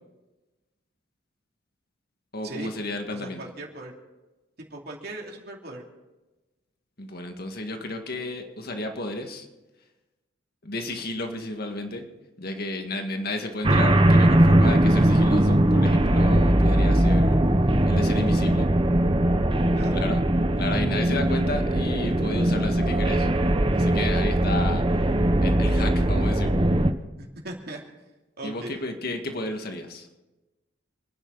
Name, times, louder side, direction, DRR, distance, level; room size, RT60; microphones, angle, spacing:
voice 1, 2.3-3.5 7.0-9.5 10.6-12.1 12.4-17.4 17.9-18.7 19.9-20.2 20.6-23.3 23.7-25.0 25.4-26.5 28.4-30.1, left 2 dB, 55° left, 5 dB, 1.9 m, -32 dB
voice 2, 3.1-3.9 4.7-5.8 19.7-20.0 27.2-27.8 28.4-28.8, right 2 dB, 60° right, 0 dB, 2.8 m, -38 dB
sound 1, 13.6-26.9, right 1 dB, 30° right, 0.9 m, -20 dB
27.5 x 10.0 x 4.0 m, 1.1 s
head